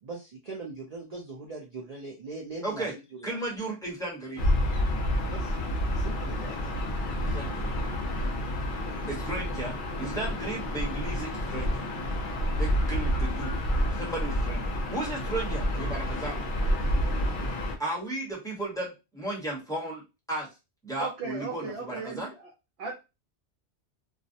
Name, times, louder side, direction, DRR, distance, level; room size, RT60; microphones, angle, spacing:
voice 1, 0.0-3.4 5.3-5.5 6.0-6.7 7.1-7.3, right 3 dB, 50° right, -2 dB, 0.5 m, -41 dB
voice 2, 2.6-2.9 3.2-4.4 7.2-7.7 9.1-11.9 12.6-13.6 13.9-16.4 17.8-20.0 20.3-20.5 20.8-22.3, right 2 dB, 5° left, -5 dB, 0.9 m, -35 dB
Gull seagull / Ocean, 4.4-17.8, equal, 55° left, 0.7 m, -29 dB
voice 3, 21.0-22.5 22.8-22.9, right 4 dB, 70° right, -2 dB, 0.9 m, -36 dB
2.3 x 2.0 x 2.7 m, 0.26 s
omnidirectional pair, 1.2 m